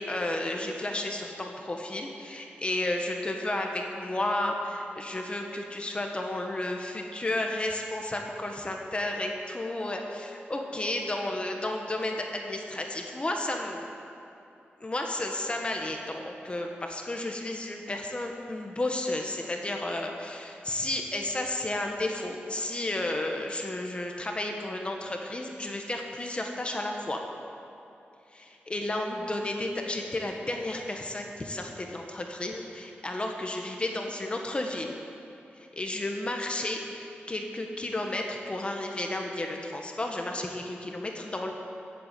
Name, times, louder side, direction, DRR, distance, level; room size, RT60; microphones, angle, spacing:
voice 1, 0.0-13.9 14.8-27.2 28.3-35.0 35.5-41.5, left 1 dB, 25° left, 2 dB, 1.4 m, -32 dB
14.5 x 8.2 x 8.4 m, 2.8 s
wide cardioid pair, 100°, 4 cm